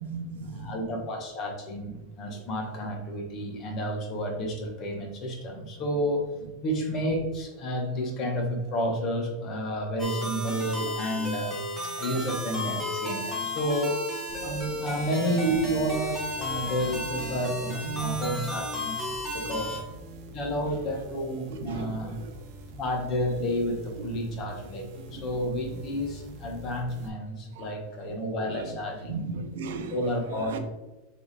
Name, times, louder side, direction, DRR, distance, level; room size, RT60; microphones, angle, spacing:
voice 1, 0.0-0.8 14.7-14.9 16.6-16.7 17.9-18.5 19.2-19.6 20.5-20.6 21.5-22.3 24.0-24.1 25.0-25.4 27.6-27.7 28.4-28.7 29.1-30.0 30.3-30.6, right 5 dB, 70° right, 0.8 m, -37 dB
voice 2, 0.5-6.3 6.6-14.0 14.4-19.0 19.3-19.8 20.3-22.2 22.8-29.2 29.9-30.6, equal, 25° left, 1.1 m, -30 dB
sound 1, 10.0-19.8, left 1 dB, ahead, 1.4 m, -33 dB
sound 2, 14.3-27.1, equal, 40° right, 0.9 m, -45 dB
6.8 x 3.6 x 4.1 m
supercardioid pair, 180°, 0 cm